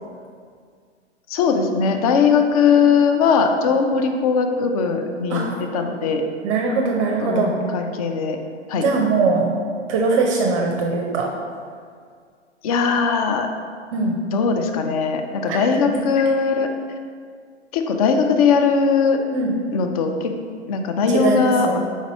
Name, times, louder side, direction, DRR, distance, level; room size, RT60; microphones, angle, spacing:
voice 1, 1.3-5.4 5.7-6.3 7.2-7.4 7.7-8.4 8.7-8.9 12.6-13.5 14.3-16.7 17.7-19.2 19.7-20.3 20.7-21.8, left 5 dB, 35° left, 5 dB, 0.4 m, -19 dB
voice 2, 6.4-7.6 8.8-9.5 9.9-11.3 13.9-14.1 15.5-15.6 19.3-19.5 21.1-21.8, right 4 dB, 25° right, 1 dB, 0.6 m, -21 dB
5.0 x 4.0 x 5.1 m, 2.1 s
figure-of-eight pair, 110°, 36 cm